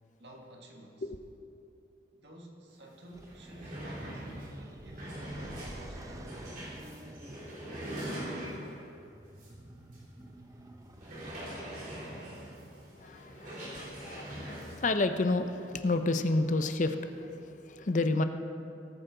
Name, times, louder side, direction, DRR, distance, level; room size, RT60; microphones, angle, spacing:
voice 1, 0.2-1.1 2.1-6.4, right 1 dB, 70° right, 1 dB, 1.7 m, -52 dB
sound 1, 2.8-2.9 3.2-8.9 9.4-9.5 9.9-10.0 11.0-14.8, right 1 dB, 45° right, 3.2 m, -42 dB
sound 2, 3.1-12.6, right 1 dB, 20° right, 0.6 m, -50 dB
voice 2, 13.0-18.2, left 2 dB, 45° left, 9 dB, 0.6 m, -30 dB
19.0 x 9.0 x 3.8 m, 2.6 s
head